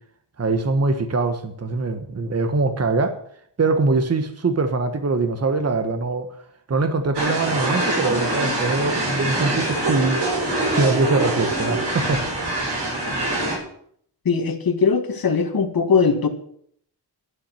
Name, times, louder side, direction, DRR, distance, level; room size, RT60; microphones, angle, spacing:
voice 1, 0.4-3.2 3.6-6.3 6.7-10.2 10.7-12.6, right 3 dB, 35° right, 8 dB, 1.4 m, -23 dB
sound 1, 7.1-13.6, right 1 dB, 70° right, 6.7 m, -24 dB
voice 2, 14.3-16.3, left 5 dB, 55° left, 4 dB, 2.1 m, -20 dB
12.5 x 7.4 x 9.2 m, 0.64 s
wide cardioid pair, 100°, 42 cm